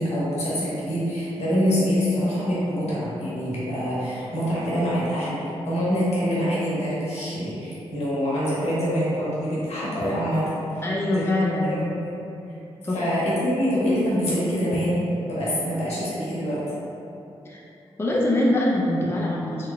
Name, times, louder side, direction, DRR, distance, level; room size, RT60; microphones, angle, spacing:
voice 1, 0.0-10.8 11.1-11.2 11.6-12.0 12.9-16.6, equal, 75° left, -8 dB, 1.1 m, -25 dB
voice 2, 10.8-11.7 12.8-13.0 17.4-17.6 18.0-19.7, left 1 dB, 20° left, -4 dB, 0.5 m, -23 dB
3.8 x 3.1 x 2.2 m, 2.8 s
supercardioid pair, 40°, 11 cm